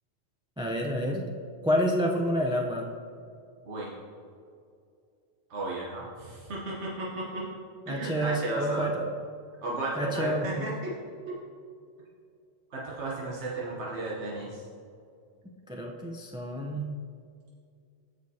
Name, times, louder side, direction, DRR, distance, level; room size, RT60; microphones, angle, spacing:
voice 1, 0.6-1.3 1.6-2.9 7.9-9.0 10.0-10.7 15.7-16.9, equal, 10° right, 0 dB, 0.3 m, -29 dB
voice 2, 5.5-7.4 7.9-8.9 9.6-10.9 12.7-14.6, right 2 dB, 80° right, -4 dB, 1.3 m, -34 dB
14.0 x 5.0 x 2.8 m, 2.4 s
omnidirectional pair, 1.1 m